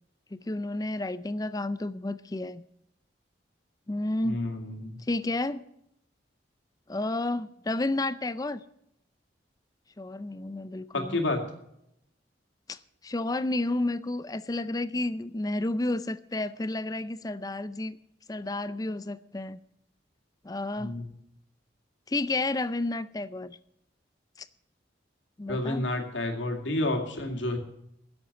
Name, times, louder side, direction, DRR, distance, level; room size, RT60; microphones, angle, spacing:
voice 1, 0.3-2.6 3.9-4.4 5.1-5.6 6.9-8.6 10.0-11.2 12.7-12.8 13.0-18.0 18.3-19.6 20.4-20.9 22.1-23.6 24.4-24.5 25.4-25.9, left 2 dB, 20° left, 0.4 m, -31 dB
voice 2, 4.2-5.0 10.9-11.4 20.8-21.1 25.5-27.6, left 2 dB, 85° left, 2.5 m, -30 dB
11.0 x 8.0 x 9.8 m
head